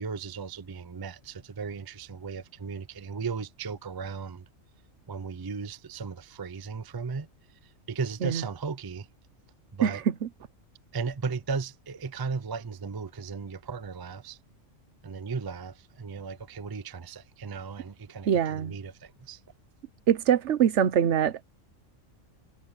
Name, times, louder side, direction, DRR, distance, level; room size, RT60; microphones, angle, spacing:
voice 1, 0.0-4.5 5.1-9.1 9.7-10.0 10.9-14.4 15.0-19.4, right 5 dB, 35° right, 0.3 m, -36 dB
voice 2, 18.3-18.8 20.1-21.4, right 9 dB, 65° right, 1.1 m, -23 dB
omnidirectional pair, 1.4 m